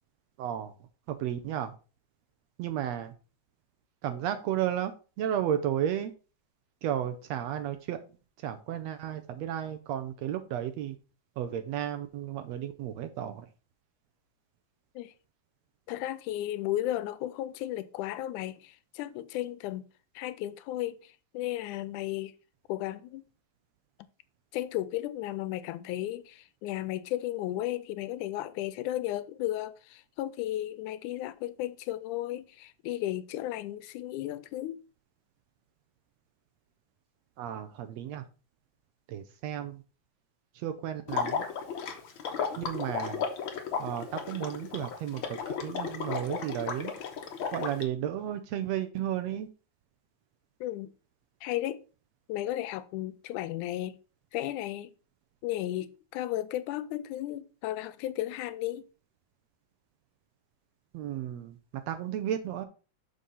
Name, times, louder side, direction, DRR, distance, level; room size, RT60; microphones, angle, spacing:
voice 1, 0.4-0.7 1.1-1.7 2.6-3.1 4.0-4.9 5.2-6.1 6.8-8.0 8.4-11.0 11.4-13.5 37.4-38.2 39.1-39.8 40.5-41.4 42.6-43.2 43.8-46.9 47.5-49.5 60.9-61.6 61.9-62.7, right 10 dB, 75° right, 1.7 m, -33 dB
voice 2, 15.9-19.9 20.2-22.3 22.7-23.2 24.5-34.8 50.6-50.9 51.4-51.8 52.3-54.0 54.3-54.9 55.4-58.8, left 14 dB, 85° left, 2.1 m, -34 dB
Water / Liquid, 41.1-47.8, left 6 dB, 55° left, 1.4 m, -34 dB
6.4 x 5.3 x 5.5 m
omnidirectional pair, 3.5 m